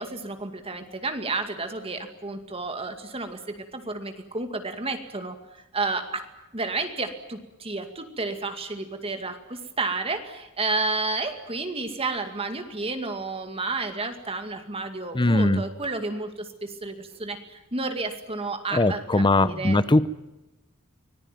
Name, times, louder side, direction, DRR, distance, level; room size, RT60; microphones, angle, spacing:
voice 1, 0.0-5.4 5.7-6.3 6.5-20.0, right 3 dB, 25° right, 7 dB, 2.3 m, -31 dB
voice 2, 15.1-15.6 18.7-20.1, left 2 dB, 20° left, 15 dB, 0.8 m, -20 dB
25.5 x 19.5 x 9.2 m, 0.98 s
head